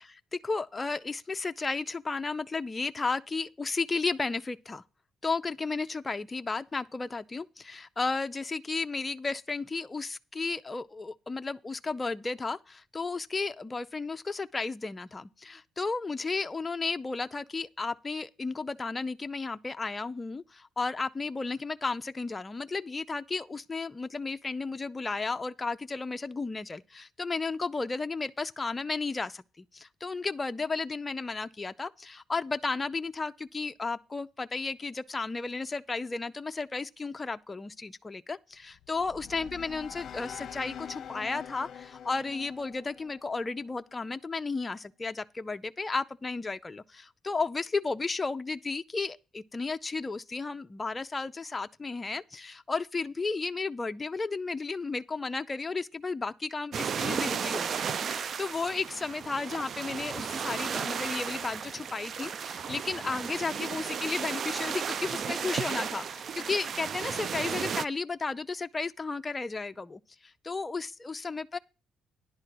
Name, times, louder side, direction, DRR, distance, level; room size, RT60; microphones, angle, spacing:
voice 1, 0.0-4.8 5.2-71.6, left 4 dB, 25° left, 0.5 m, -33 dB
sound 1, 38.7-44.0, left 9 dB, 60° left, 0.7 m, -45 dB
sound 2, 56.7-67.9, right 7 dB, 55° right, 0.4 m, -34 dB
10.5 x 4.4 x 7.7 m
cardioid pair, 95°, 0 cm